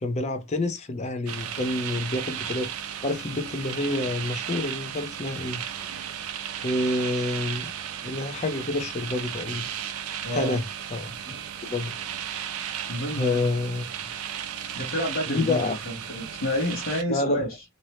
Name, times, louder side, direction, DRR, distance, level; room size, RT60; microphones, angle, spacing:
voice 1, 0.0-5.6 6.6-7.7 8.0-9.6 10.3-10.6 10.9-11.4 11.6-11.9 13.2-13.8 15.3-15.8 17.1-17.4, left 2 dB, 30° left, 0.5 m, -28 dB
sound 1, 1.3-17.0, right 9 dB, 85° right, 0.4 m, -35 dB
voice 2, 10.2-10.6 12.9-13.4 14.7-17.6, left 1 dB, 70° left, 0.9 m, -29 dB
2.6 x 2.0 x 2.8 m
head